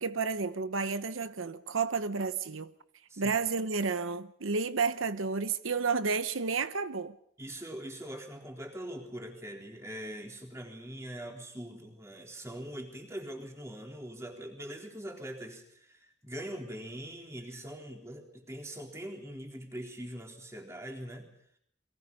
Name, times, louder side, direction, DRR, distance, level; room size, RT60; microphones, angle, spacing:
voice 1, 0.0-2.7 3.2-7.1, right 4 dB, 80° right, 0.9 m, -31 dB
voice 2, 7.4-21.3, right 1 dB, 15° right, 3.9 m, -42 dB
29.5 x 23.5 x 5.5 m
head